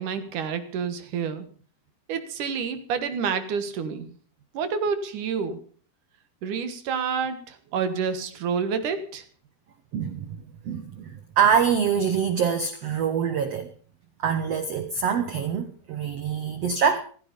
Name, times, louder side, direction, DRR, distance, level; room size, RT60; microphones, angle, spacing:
voice 1, 0.0-1.5 2.1-4.1 4.5-5.6 6.4-9.3, right 6 dB, 60° right, 2.8 m, -28 dB
voice 2, 9.9-10.4 10.6-13.7 14.2-17.0, right 7 dB, 80° right, 1.4 m, -25 dB
16.0 x 15.0 x 5.2 m
omnidirectional pair, 4.5 m